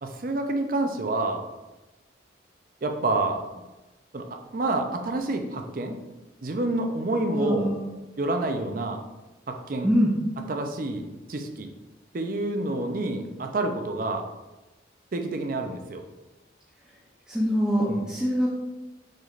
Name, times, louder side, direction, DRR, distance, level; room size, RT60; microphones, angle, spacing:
voice 1, 0.0-1.4 2.8-3.6 4.1-6.0 6.4-7.7 8.2-9.0 9.5-9.9 10.5-11.7 12.1-14.2 15.1-16.0 17.9-18.1, right 2 dB, 45° right, 5 dB, 0.5 m, -28 dB
voice 2, 7.3-7.9 9.8-10.1 17.3-18.5, equal, 5° right, -8 dB, 0.6 m, -24 dB
6.5 x 3.2 x 2.4 m, 1.1 s
head